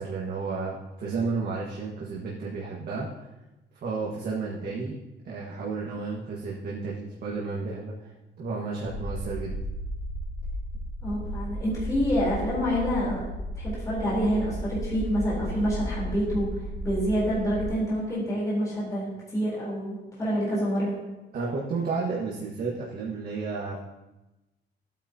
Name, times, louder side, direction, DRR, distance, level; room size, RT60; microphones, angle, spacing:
voice 1, 0.0-3.1 3.8-5.0 5.2-8.1 8.4-9.5 21.3-23.8, right 4 dB, 50° right, -4 dB, 1.6 m, -32 dB
sound 1, 8.8-17.7, equal, 85° left, 2.6 m, -34 dB
voice 2, 11.0-13.2 13.5-21.0, equal, 15° left, -8 dB, 3.6 m, -27 dB
16.0 x 9.0 x 2.8 m, 1.0 s
cardioid pair, 175°, 20 cm